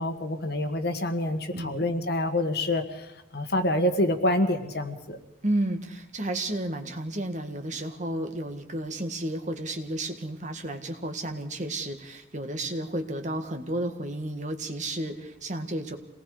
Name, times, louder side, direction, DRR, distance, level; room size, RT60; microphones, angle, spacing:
voice 1, 0.0-5.2, left 1 dB, 60° left, 7 dB, 1.8 m, -27 dB
voice 2, 1.5-1.8 5.4-16.0, right 1 dB, 40° right, 6 dB, 1.9 m, -32 dB
28.0 x 19.0 x 5.1 m, 0.86 s
head